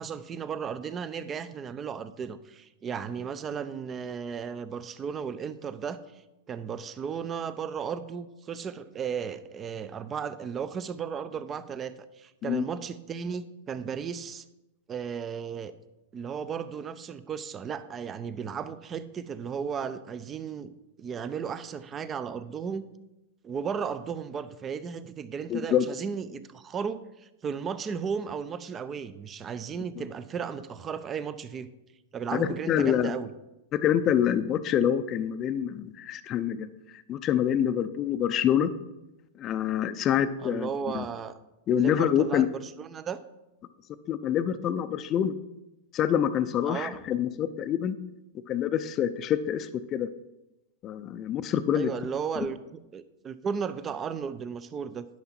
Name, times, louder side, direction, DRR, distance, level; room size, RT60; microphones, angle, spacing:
voice 1, 0.0-6.2 6.5-14.4 14.9-15.7 16.1-20.7 21.0-22.8 23.4-31.7 32.1-33.3 40.4-41.4 41.7-43.2 46.6-47.0 51.7-55.1, right 6 dB, 25° right, 14 dB, 0.6 m, -35 dB
voice 2, 25.5-25.9 32.3-33.1 33.7-36.7 37.1-38.7 39.4-40.7 40.9-41.0 41.7-42.5 44.1-45.3 45.9-47.9 48.5-50.1 50.8-51.9, left 9 dB, 35° left, 12 dB, 0.5 m, -26 dB
11.0 x 5.8 x 4.4 m, 0.95 s
hypercardioid pair, 115°, 0 cm